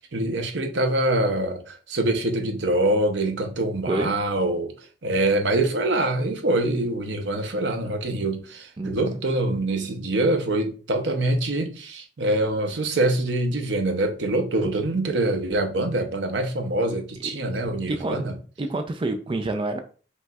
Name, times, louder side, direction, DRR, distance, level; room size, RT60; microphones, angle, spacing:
voice 1, 0.0-4.7 5.0-18.4, right 1 dB, 75° right, 0.8 m, -24 dB
voice 2, 8.8-9.2 14.6-14.7 17.2-17.3 17.9-18.2 18.6-19.8, right 2 dB, 30° right, 0.4 m, -28 dB
5.3 x 3.1 x 2.3 m
head